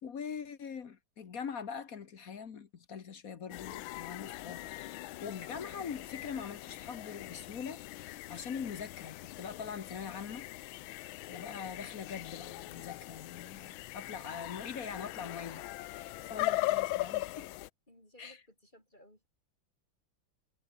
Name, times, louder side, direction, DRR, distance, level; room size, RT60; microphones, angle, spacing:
voice 1, 0.0-10.5 11.3-15.7 15.9-17.5 18.2-18.4, left 6 dB, 50° left, 1.6 m, -43 dB
sound 1, 3.5-17.7, left 17 dB, 85° left, 1.4 m, -40 dB
voice 2, 17.9-19.3, equal, 20° left, 7.9 m, -60 dB
omnidirectional pair, 2.2 m